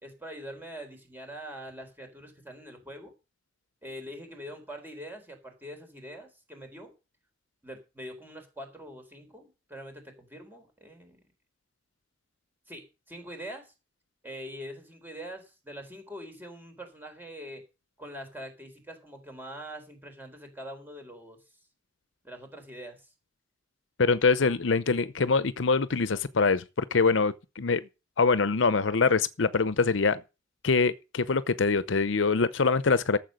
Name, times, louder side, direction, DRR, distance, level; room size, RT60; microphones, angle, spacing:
voice 1, 0.0-3.1 3.8-6.9 7.6-11.2 12.7-13.7 14.2-17.6 18.0-21.4 22.2-23.1, equal, 10° right, 4.0 m, -43 dB
voice 2, 24.0-27.9 28.2-30.2 30.6-33.2, left 4 dB, 70° left, 0.7 m, -24 dB
13.0 x 7.5 x 6.4 m
head